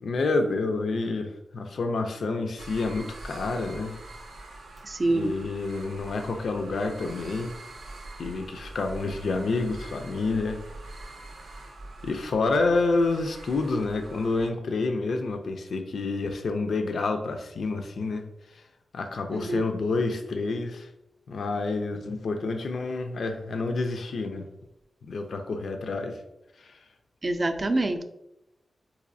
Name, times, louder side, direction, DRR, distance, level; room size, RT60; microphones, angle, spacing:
voice 1, 0.0-4.0 5.1-7.5 8.2-10.6 12.0-18.6 18.9-20.9 21.3-24.5 25.0-26.2 26.6-26.8, left 3 dB, 80° left, 6 dB, 0.3 m, -28 dB
sound 1, 2.6-14.5, right 2 dB, 85° right, 0.5 m, -44 dB
voice 2, 4.8-5.4 19.3-19.7 27.2-28.0, right 2 dB, 40° right, 7 dB, 0.4 m, -26 dB
4.0 x 2.6 x 2.6 m, 0.84 s
wide cardioid pair, 90°, 0 cm